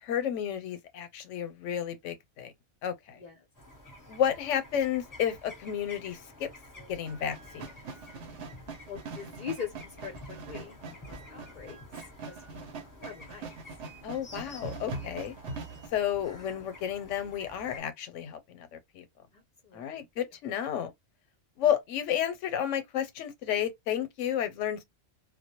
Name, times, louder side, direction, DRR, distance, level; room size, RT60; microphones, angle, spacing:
voice 1, 0.0-2.5 2.8-3.2 4.1-6.5 6.9-7.7 14.0-15.3 15.9-19.0 19.7-20.9 21.6-24.8, left 9 dB, 90° left, 0.9 m, -31 dB
sound 1, 3.5-17.8, left 2 dB, 20° left, 0.7 m, -50 dB
sound 2, 7.0-15.9, right 3 dB, 70° right, 0.9 m, -42 dB
voice 2, 8.9-11.8 12.2-13.5 15.7-15.8 19.3-20.0, left 7 dB, 50° left, 0.6 m, -42 dB
2.2 x 2.0 x 2.8 m
omnidirectional pair, 1.2 m